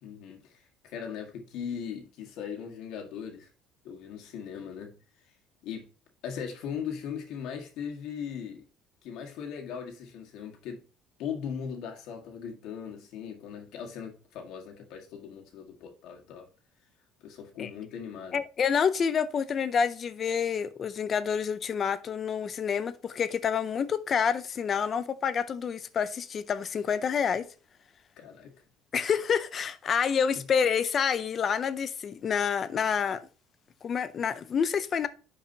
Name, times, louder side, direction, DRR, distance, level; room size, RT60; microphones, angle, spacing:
voice 1, 0.0-3.5 3.8-4.9 5.6-5.9 6.2-8.6 9.0-10.8 11.2-16.5 17.2-18.4 28.2-28.5 30.3-30.4, left 7 dB, 60° left, 1.8 m, -39 dB
voice 2, 18.3-27.5 28.9-33.2 33.8-35.1, left 7 dB, 30° left, 0.5 m, -28 dB
10.5 x 4.8 x 2.8 m
cardioid pair, 175°, 0 cm